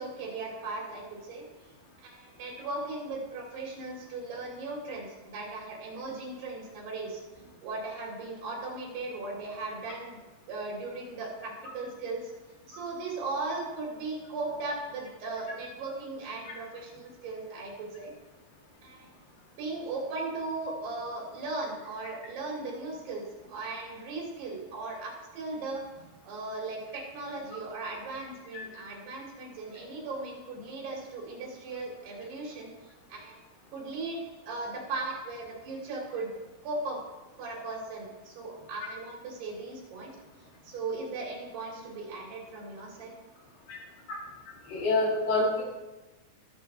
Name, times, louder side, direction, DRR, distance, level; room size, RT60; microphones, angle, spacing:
voice 1, 0.0-1.4 2.0-7.2 7.6-10.2 10.5-12.3 12.7-18.1 18.8-19.1 19.6-23.2 23.5-25.8 26.2-32.7 33.1-33.4 33.7-34.2 34.5-36.3 36.6-37.0 37.4-40.1 40.6-43.1, right 3 dB, 80° right, -2 dB, 5.0 m, -37 dB
voice 2, 44.7-45.6, left 2 dB, 75° left, -3 dB, 4.4 m, -26 dB
20.5 x 7.3 x 3.5 m, 1.1 s
omnidirectional pair, 4.6 m